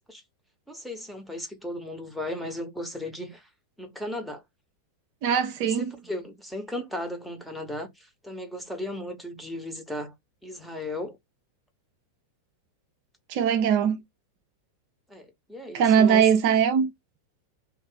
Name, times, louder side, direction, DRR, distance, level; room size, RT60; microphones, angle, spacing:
voice 1, 0.7-3.5 3.8-4.4 5.6-10.1 10.4-11.2 15.1-16.3, left 1 dB, ahead, 0.9 m, -36 dB
voice 2, 5.2-5.9 13.3-14.0 15.7-16.9, right 8 dB, 45° right, 0.5 m, -21 dB
2.9 x 2.3 x 3.8 m
figure-of-eight pair, 90°, 0 cm